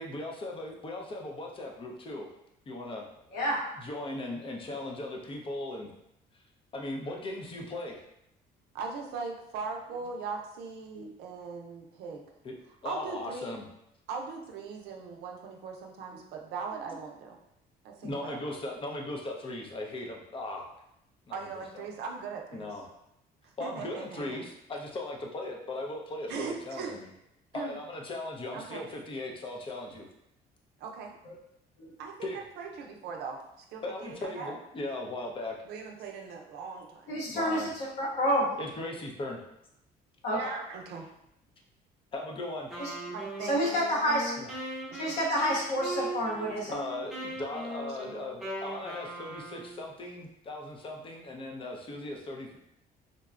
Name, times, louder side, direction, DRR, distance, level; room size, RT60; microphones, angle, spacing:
voice 1, 0.0-2.3 2.7-3.0 3.8-5.9 6.7-8.0 12.4-12.6 12.8-13.6 18.0-20.7 21.3-21.8 22.5-22.8 23.6-27.1 27.5-30.1 32.2-32.4 33.8-35.6 37.3-37.7 38.6-39.4 42.1-42.7 44.4-44.5 46.7-52.6, left 2 dB, 30° left, 1 dB, 0.6 m, -38 dB
voice 2, 8.7-12.2 12.8-13.5 14.1-17.4 17.8-18.5 21.3-22.7 23.4-24.4 26.3-27.0 27.5-27.8 28.5-28.9 30.8-31.1 32.0-33.4 33.7-34.5 35.6-37.2 40.3-41.1 43.1-43.6 44.9-45.0, right 5 dB, 75° right, 1 dB, 0.5 m, -39 dB
voice 3, 37.1-38.5 40.2-40.4 42.8-42.9 43.4-44.3 44.9-46.8, equal, 80° left, -4 dB, 1.0 m, -29 dB
Wind instrument woodwind instrument, 42.7-49.8, right 1 dB, ahead, 0.9 m, -39 dB
3.9 x 2.2 x 2.3 m, 0.80 s
cardioid pair, 110°, 17 cm